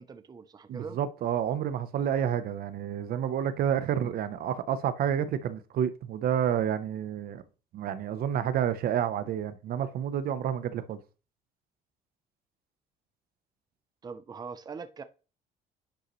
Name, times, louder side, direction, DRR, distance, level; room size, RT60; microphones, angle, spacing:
voice 1, 0.0-1.0 14.0-15.0, right 5 dB, 25° right, 0.6 m, -42 dB
voice 2, 0.7-7.4 7.7-11.0, right 9 dB, 60° right, 0.8 m, -29 dB
10.0 x 5.4 x 3.1 m
cardioid pair, 110°, 17 cm